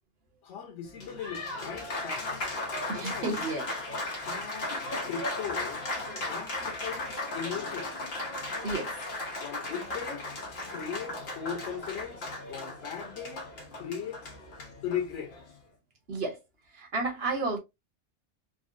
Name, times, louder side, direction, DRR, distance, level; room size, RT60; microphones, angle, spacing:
voice 1, 0.4-2.5 2.9-3.4 4.2-5.8 6.3-8.1 9.4-10.3 10.7-14.3 14.8-15.4, left 7 dB, 90° left, 1.1 m, -38 dB
Applause, 0.8-15.6, left 2 dB, 60° left, 1.1 m, -36 dB
voice 2, 2.9-3.6 4.0-4.2 8.6-8.9 16.1-16.4 16.7-17.6, right 3 dB, 60° right, 1.1 m, -32 dB
3.7 x 2.0 x 2.4 m
omnidirectional pair, 1.2 m